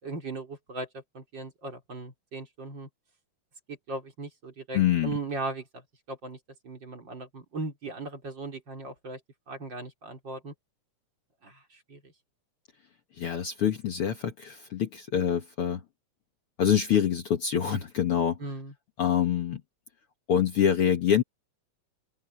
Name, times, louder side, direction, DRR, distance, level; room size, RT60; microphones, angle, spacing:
voice 1, 0.0-2.9 3.7-5.8 6.1-6.4 6.6-9.2 9.5-10.5 11.4-11.6 11.9-12.1 18.4-18.7, right 2 dB, 35° right, 4.3 m, -38 dB
voice 2, 4.7-5.1 13.2-15.8 16.6-18.4 19.0-19.6 20.3-21.2, left 9 dB, 55° left, 1.9 m, -25 dB
open air
omnidirectional pair, 3.4 m